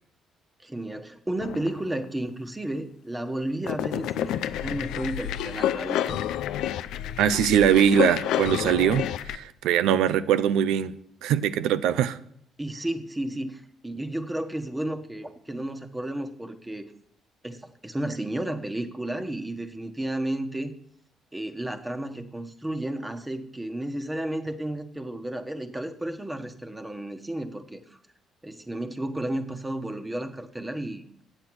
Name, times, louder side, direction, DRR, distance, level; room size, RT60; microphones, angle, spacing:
voice 1, 0.6-6.2 12.6-16.9 17.4-20.7 21.3-28.0 28.4-31.1, right 1 dB, 15° right, 7 dB, 1.2 m, -32 dB
sound 1, 1.4-2.0 3.7-9.4, left 11 dB, 80° left, 0.4 m, -29 dB
voice 2, 7.2-10.9 11.2-12.2, right 9 dB, 80° right, 14 dB, 0.5 m, -22 dB
8.8 x 7.8 x 6.2 m, 0.69 s
supercardioid pair, 65°, 0 cm